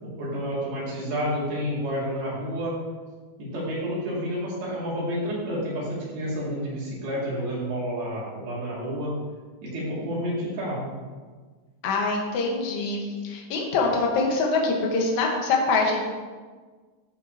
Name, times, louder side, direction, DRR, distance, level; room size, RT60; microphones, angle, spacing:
voice 1, 0.0-2.8 3.4-9.1 9.6-10.9, equal, 60° right, -7 dB, 3.9 m, -30 dB
voice 2, 11.8-16.0, left 3 dB, 85° left, -1 dB, 1.6 m, -24 dB
14.0 x 5.6 x 2.7 m, 1.4 s
omnidirectional pair, 5.1 m